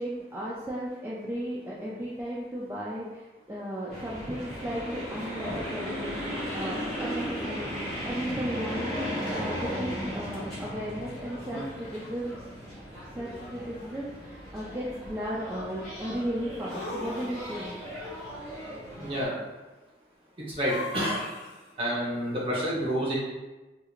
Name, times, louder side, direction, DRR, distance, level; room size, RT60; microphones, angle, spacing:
voice 1, 0.0-3.2 3.5-12.4 13.1-17.7, equal, 15° right, -7 dB, 0.3 m, -35 dB
sound 1, 3.9-19.2, equal, 5° left, 1.2 m, -36 dB
sound 2, 10.3-10.4 11.3-12.1 13.3-14.0 16.7-17.7 20.6-21.7, left 2 dB, 65° left, 1.0 m, -40 dB
voice 2, 19.0-19.3 20.4-21.3 21.8-23.1, equal, 30° right, -5 dB, 0.9 m, -29 dB
3.7 x 3.0 x 2.4 m, 1.1 s
head